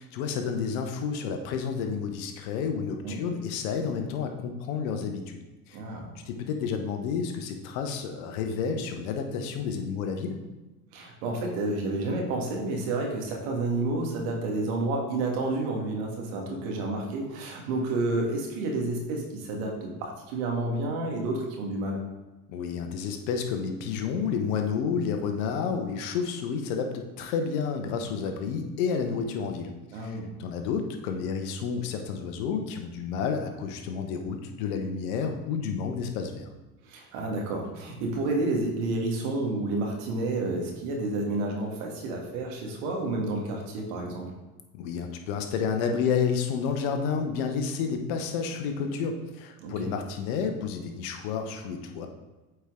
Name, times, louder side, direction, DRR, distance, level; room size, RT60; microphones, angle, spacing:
voice 1, 0.0-5.4 5.7-5.8 6.2-10.4 22.5-36.5 44.8-52.1, left 6 dB, 70° left, 5 dB, 1.1 m, -30 dB
voice 2, 5.7-6.1 10.9-22.0 29.9-30.3 36.8-44.3 49.6-49.9, right 2 dB, 70° right, 0 dB, 1.8 m, -30 dB
8.2 x 4.5 x 3.7 m, 1.1 s
hypercardioid pair, 80°, 44 cm